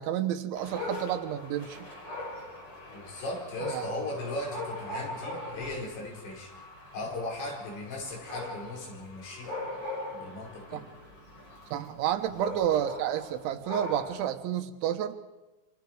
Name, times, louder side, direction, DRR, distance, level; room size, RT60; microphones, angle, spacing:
voice 1, 0.0-1.9 3.7-4.0 10.7-10.8 11.7-15.2, right 11 dB, 90° right, 9 dB, 3.5 m, -30 dB
Dog, 0.6-14.3, left 1 dB, 30° left, 5.8 m, -41 dB
voice 2, 2.9-6.5 6.9-9.5 10.1-10.9 12.3-12.5, left 2 dB, 75° left, 0 dB, 7.6 m, -37 dB
27.0 x 25.5 x 4.8 m, 1.1 s
omnidirectional pair, 5.3 m